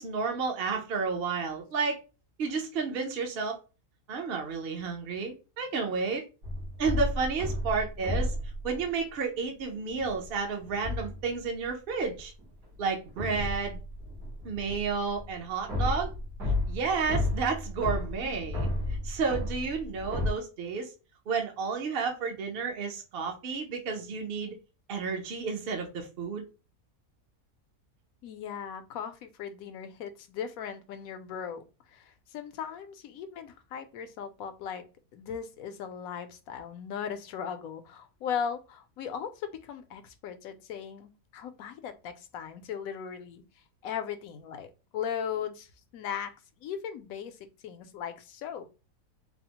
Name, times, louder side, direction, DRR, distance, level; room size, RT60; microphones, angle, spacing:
voice 1, 0.0-2.0 2.4-3.6 4.1-6.2 6.8-8.3 8.6-12.3 12.8-13.8 14.4-16.1 16.7-18.7 19.0-20.9 21.3-24.6 24.9-26.5, right 5 dB, 55° right, 0.7 m, -31 dB
sound 1, 6.4-8.9 10.0-10.2 10.6-11.4 12.2-20.3, left 1 dB, 80° right, 1.9 m, -33 dB
voice 2, 28.2-31.6 31.9-34.8 35.1-43.4 43.8-46.3 46.6-48.7, left 8 dB, 75° left, 1.0 m, -38 dB
4.1 x 2.0 x 2.9 m
omnidirectional pair, 1.6 m